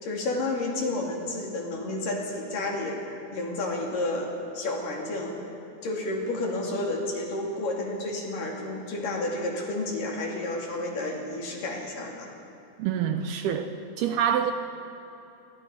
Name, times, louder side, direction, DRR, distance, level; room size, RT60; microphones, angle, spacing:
voice 1, 0.0-5.4 5.8-12.3, left 2 dB, 55° left, -1 dB, 4.1 m, -31 dB
voice 2, 12.8-13.7 14.0-14.5, right 9 dB, 75° right, 7 dB, 2.6 m, -26 dB
28.5 x 23.5 x 5.0 m, 2.9 s
omnidirectional pair, 5.0 m